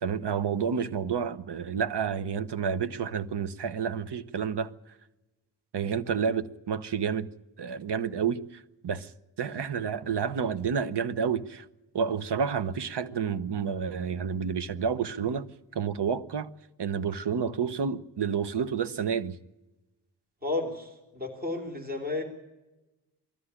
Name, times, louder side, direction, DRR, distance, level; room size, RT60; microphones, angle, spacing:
voice 1, 0.0-4.7 5.7-7.3 7.6-9.1 9.4-11.7 11.9-15.5 15.7-16.5 16.8-19.4, right 6 dB, 70° right, 1.1 m, -30 dB
voice 2, 20.4-20.9 21.1-22.2, left 2 dB, 20° right, 3.3 m, -32 dB
20.0 x 14.0 x 9.8 m
wide cardioid pair, 85°, 42 cm